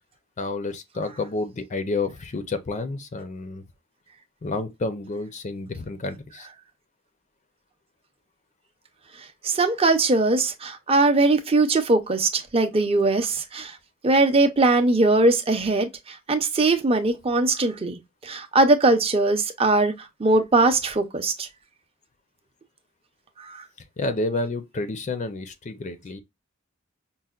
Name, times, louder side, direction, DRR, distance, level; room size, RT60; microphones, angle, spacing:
voice 1, 0.4-3.6 4.4-6.5 24.0-26.2, left 2 dB, 35° left, 0.5 m, -30 dB
voice 2, 9.4-13.7 14.0-15.9 16.3-19.9 20.2-21.5 23.4-23.6, right 2 dB, 30° right, 0.6 m, -20 dB
5.4 x 2.1 x 2.3 m
head